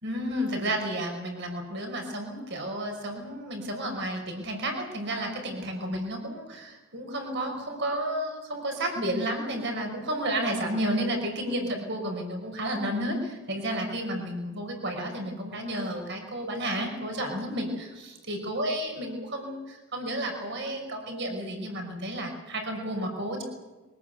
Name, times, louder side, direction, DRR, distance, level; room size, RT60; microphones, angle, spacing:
voice 1, 0.0-23.4, right 1 dB, 55° right, 3 dB, 5.6 m, -32 dB
23.0 x 19.5 x 8.1 m, 1.2 s
head